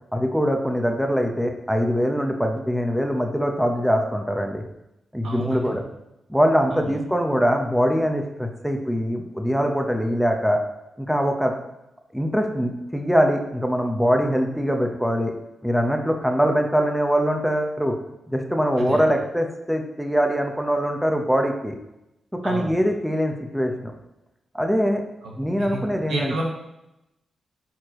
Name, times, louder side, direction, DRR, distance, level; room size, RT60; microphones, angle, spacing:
voice 1, 0.1-4.6 5.1-5.9 6.3-10.6 11.0-11.5 12.1-15.3 15.6-18.0 18.3-21.8 22.4-23.9 24.5-25.0 25.4-26.4, equal, ahead, 3 dB, 1.2 m, -23 dB
voice 2, 5.2-5.7 6.7-7.0 18.8-19.0 22.4-22.7 25.2-25.3 25.7-25.8 26.1-26.4, right 2 dB, 80° right, -2 dB, 1.8 m, -30 dB
11.0 x 4.5 x 3.2 m, 0.89 s
supercardioid pair, 45°, 0 cm